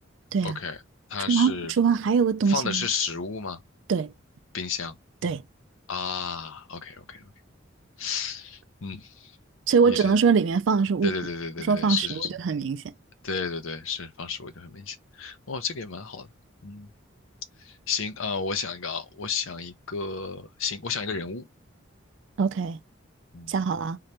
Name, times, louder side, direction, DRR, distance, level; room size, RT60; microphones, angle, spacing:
voice 1, 0.4-0.8 1.1-1.7 2.5-3.6 4.5-5.0 5.9-7.3 8.0-9.3 9.8-10.2 11.0-12.3 13.2-16.3 16.6-16.9 17.6-21.5 23.3-23.5, left 5 dB, 80° left, 0.7 m, -32 dB
voice 2, 1.3-2.9 3.9-4.1 5.2-5.4 9.7-11.1 11.7-12.8 22.4-22.8 23.5-24.0, right 5 dB, 65° right, 0.4 m, -23 dB
3.7 x 2.9 x 3.3 m
head